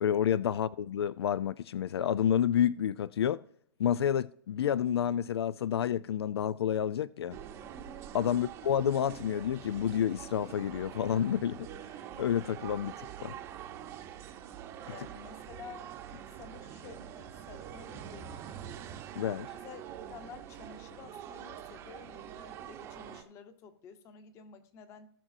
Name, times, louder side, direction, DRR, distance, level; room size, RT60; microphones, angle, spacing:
voice 1, 0.0-3.4 3.8-7.4 8.1-11.7 12.2-13.3 19.1-19.5, left 9 dB, 75° left, 0.4 m, -29 dB
sound 1, 7.3-23.2, right 9 dB, 20° right, 0.8 m, -45 dB
voice 2, 14.9-15.9 16.3-18.6 19.6-19.8 20.1-25.1, left 6 dB, 20° left, 1.0 m, -51 dB
18.0 x 6.1 x 2.6 m
hypercardioid pair, 155°, 13 cm